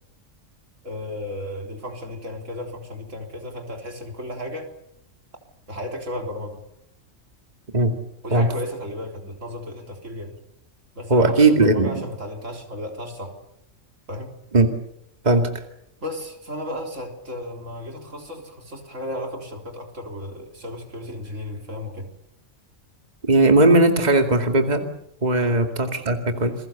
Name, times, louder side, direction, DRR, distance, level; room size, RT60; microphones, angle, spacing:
voice 1, 0.8-4.7 5.7-6.6 8.2-10.3 11.0-13.3 14.1-14.3 16.0-22.1 25.4-25.6, left 1 dB, 70° right, 3 dB, 4.2 m, -34 dB
voice 2, 11.1-12.0 14.5-14.7 15.2-15.6 23.2-24.8 25.2-26.5, right 2 dB, 30° right, 4 dB, 2.4 m, -18 dB
28.5 x 22.0 x 7.1 m, 0.75 s
omnidirectional pair, 1.3 m